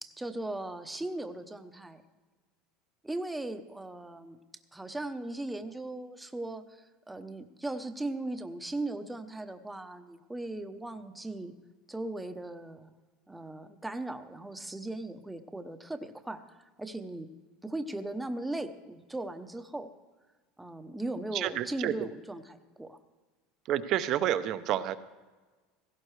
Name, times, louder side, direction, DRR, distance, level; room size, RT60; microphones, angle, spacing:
voice 1, 0.0-2.0 3.0-4.4 4.7-11.5 11.9-12.9 13.3-17.3 17.6-19.9 20.6-23.0, right 2 dB, 5° right, 8 dB, 0.8 m, -38 dB
voice 2, 21.3-21.9 23.7-24.9, right 11 dB, 50° right, 12 dB, 0.7 m, -29 dB
16.5 x 15.5 x 3.2 m, 1.3 s
supercardioid pair, 135°, 0 cm